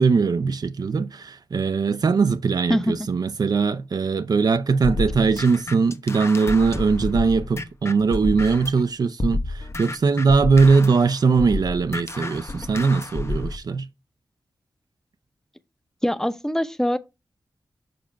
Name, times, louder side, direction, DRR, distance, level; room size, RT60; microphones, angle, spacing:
voice 1, 0.0-13.8, right 4 dB, 60° right, 0.5 m, -20 dB
sound 1, 4.8-8.8 9.2-13.6, left 2 dB, 35° left, 0.8 m, -30 dB
voice 2, 16.0-17.0, equal, 5° left, 0.7 m, -23 dB
5.7 x 5.1 x 5.1 m
wide cardioid pair, 75°, 8 cm